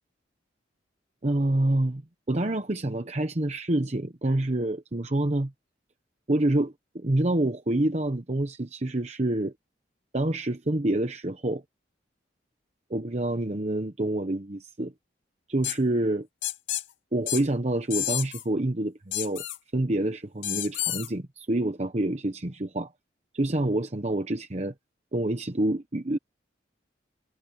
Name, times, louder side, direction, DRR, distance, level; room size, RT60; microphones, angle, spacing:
voice 1, 1.2-2.0 2.3-5.5 6.3-9.5 10.1-11.6 12.9-14.9 15.5-16.3 17.1-19.4 19.7-22.9 23.3-24.7 25.1-26.2, right 1 dB, 35° right, 1.0 m, -27 dB
sound 1, 15.6-15.8 16.4-16.8 17.3-17.4 17.9-18.4 19.1-19.6 20.4-21.1, left 13 dB, 90° left, 2.3 m, -30 dB
head